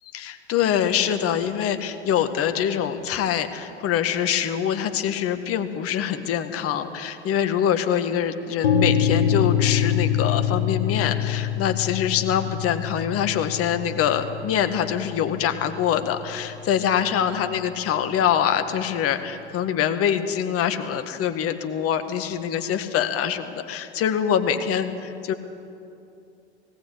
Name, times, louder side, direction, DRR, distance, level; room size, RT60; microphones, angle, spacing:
voice 1, 0.1-25.3, left 9 dB, 45° left, 9 dB, 1.6 m, -24 dB
sound 1, 8.6-16.5, left 8 dB, 70° left, 1.7 m, -25 dB
18.5 x 17.0 x 8.4 m, 2.7 s
hypercardioid pair, 80°, 34 cm